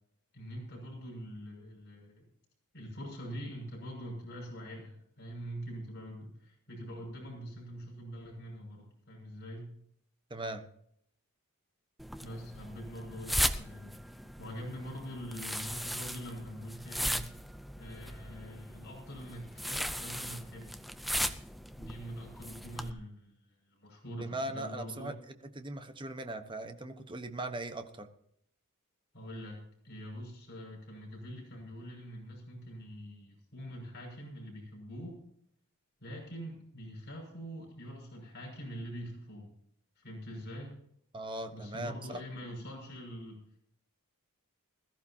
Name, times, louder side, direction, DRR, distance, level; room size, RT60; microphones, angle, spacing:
voice 1, 0.3-2.2 2.7-9.7 12.2-14.0 14.4-17.5 17.8-20.7 21.8-23.3 23.7-25.1 29.1-29.6 29.8-35.3 36.0-39.5 40.0-40.8 41.5-43.4, equal, 50° left, -2 dB, 6.5 m, -44 dB
voice 2, 10.3-10.7 24.1-25.1 25.5-28.1 41.1-42.2, right 1 dB, 20° right, 7 dB, 1.2 m, -39 dB
sound 1, 12.0-22.9, equal, ahead, 0.6 m, -37 dB
21.0 x 14.0 x 2.9 m, 0.69 s
head